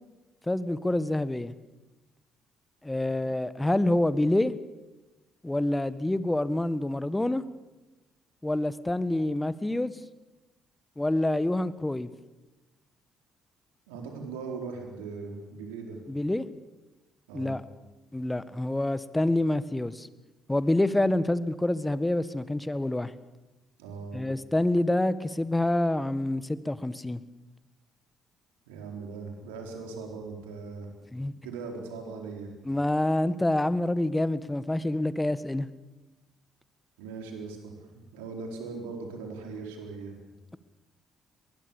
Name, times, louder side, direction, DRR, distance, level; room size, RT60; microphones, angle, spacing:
voice 1, 0.5-1.5 2.8-4.5 5.4-7.4 8.4-9.9 11.0-12.1 16.1-16.4 17.3-17.6 18.1-20.1 20.5-23.1 24.1-27.2 31.1-31.3 32.6-35.7, left 1 dB, 15° left, 15 dB, 1.5 m, -27 dB
voice 2, 13.9-16.0 17.3-17.6 23.8-24.2 28.7-30.9 31.4-32.5 37.0-40.1, right 4 dB, 80° right, 3 dB, 4.5 m, -39 dB
24.0 x 20.5 x 7.3 m, 1.1 s
hypercardioid pair, 50°, 0 cm